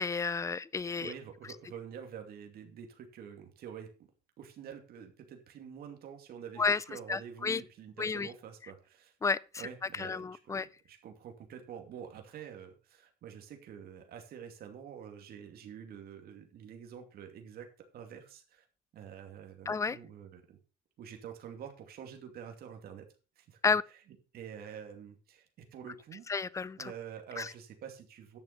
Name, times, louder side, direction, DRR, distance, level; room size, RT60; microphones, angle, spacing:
voice 1, 0.0-1.1 6.6-6.8 7.1-7.6 8.0-8.3 9.2-9.4 10.0-10.6 19.7-20.0 23.6-23.8 26.3-26.9 27.4-27.5, left 4 dB, 20° left, 0.5 m, -31 dB
voice 2, 1.0-3.9 4.4-9.1 9.6-18.6 18.9-20.6 21.0-23.0 23.4-26.4 26.8-28.4, right 8 dB, 65° right, 2.6 m, -47 dB
10.5 x 7.3 x 5.4 m
cardioid pair, 110°, 17 cm